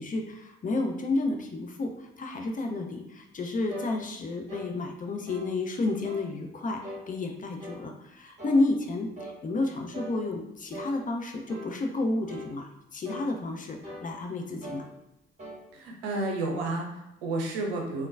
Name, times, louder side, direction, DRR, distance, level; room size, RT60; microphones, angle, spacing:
voice 1, 0.0-14.9, left 2 dB, 30° left, 3 dB, 0.6 m, -31 dB
sound 1, 3.7-3.9 4.5-4.7 5.3-5.5 6.0-6.3 6.8-7.0 7.6-7.8 8.4-8.6 9.2-9.4 9.9-10.2 10.7-10.9 11.5-11.7 12.3-12.5 13.0-13.3 13.8-14.1 14.6-14.9 15.4-15.6, equal, 25° right, 1.3 m, -40 dB
voice 2, 15.7-18.1, right 2 dB, 70° right, 1 dB, 0.7 m, -31 dB
3.7 x 2.2 x 2.4 m, 0.91 s
figure-of-eight pair, 40°, 29 cm